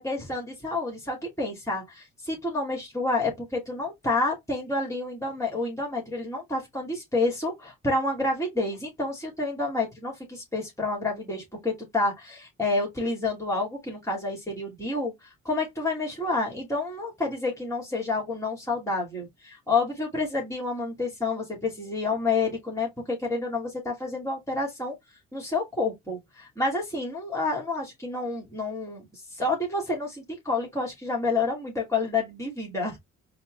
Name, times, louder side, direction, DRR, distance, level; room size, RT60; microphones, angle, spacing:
voice 1, 0.0-15.1 15.4-24.9 25.3-29.1 29.4-33.0, left 3 dB, 10° left, 2.4 m, -29 dB
4.2 x 2.6 x 3.2 m
hypercardioid pair, 45°, 36 cm